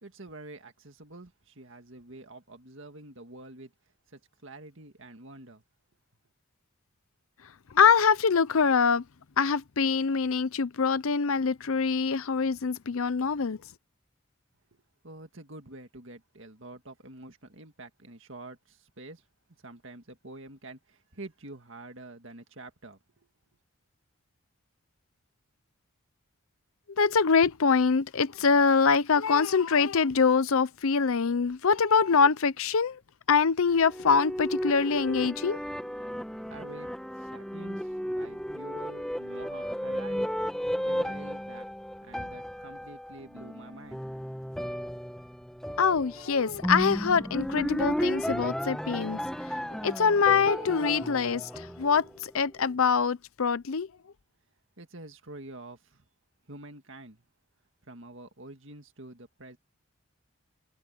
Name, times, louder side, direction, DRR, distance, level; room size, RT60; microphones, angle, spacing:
voice 1, 0.0-3.7 4.1-5.6 14.7-19.3 19.6-23.3 36.4-36.9 37.2-40.3 40.8-41.7 42.0-44.0 54.8-56.1 56.5-57.2 57.8-59.6, right 2 dB, 55° right, 2.1 m, -47 dB
voice 2, 7.7-9.0 9.4-13.6 27.0-33.0 33.3-35.6 45.8-49.2 49.8-53.9, left 5 dB, 70° left, 0.6 m, -24 dB
sound 1, 33.7-52.3, equal, ahead, 1.6 m, -34 dB
head